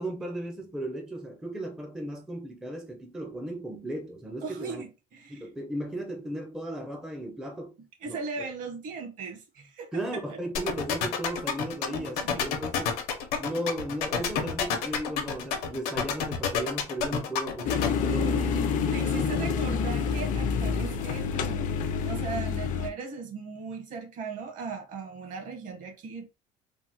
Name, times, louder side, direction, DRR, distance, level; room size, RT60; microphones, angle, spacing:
voice 1, 0.0-4.8 5.3-7.7 8.1-8.2 9.9-13.0 13.4-18.4 19.1-19.6, right 1 dB, 5° right, 0.4 m, -35 dB
voice 2, 4.4-5.5 8.0-10.0 11.9-12.5 18.1-21.6 22.0-26.3, right 5 dB, 55° right, 1.1 m, -38 dB
sound 1, 10.5-17.9, left 8 dB, 80° left, 0.7 m, -28 dB
sound 2, 17.6-22.9, left 6 dB, 55° left, 0.4 m, -28 dB
3.3 x 2.0 x 2.9 m
cardioid pair, 135°, 15 cm